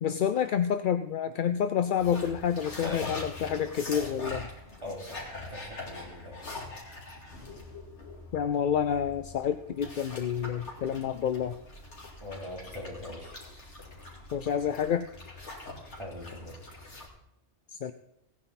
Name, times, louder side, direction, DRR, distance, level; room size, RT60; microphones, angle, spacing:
voice 1, 0.0-4.5 8.3-11.6 14.3-15.1 17.8-17.9, left 8 dB, 55° left, 10 dB, 0.6 m, -28 dB
sound 1, 2.0-17.1, left 2 dB, 70° left, 2.9 m, -43 dB
voice 2, 4.8-6.4 12.2-13.4 15.8-16.6, left 1 dB, 25° right, -2 dB, 3.5 m, -41 dB
17.0 x 9.5 x 4.1 m, 0.87 s
omnidirectional pair, 1.2 m